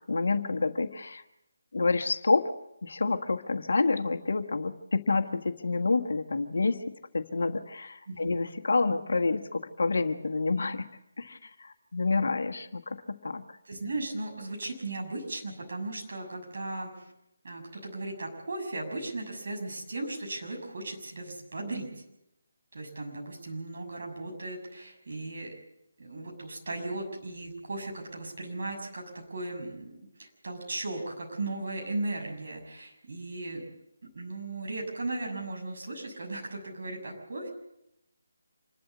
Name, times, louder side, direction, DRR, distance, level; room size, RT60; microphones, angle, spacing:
voice 1, 0.1-1.2 1.7-2.4 2.8-6.8 7.1-10.9 11.2-13.6, left 3 dB, 65° left, 7 dB, 1.5 m, -28 dB
voice 2, 13.7-17.1 17.4-22.0 22.7-25.5 26.0-33.6 34.1-37.5, right 2 dB, 55° right, 0 dB, 6.8 m, -37 dB
26.5 x 12.0 x 8.4 m, 0.83 s
figure-of-eight pair, 150°, 0 cm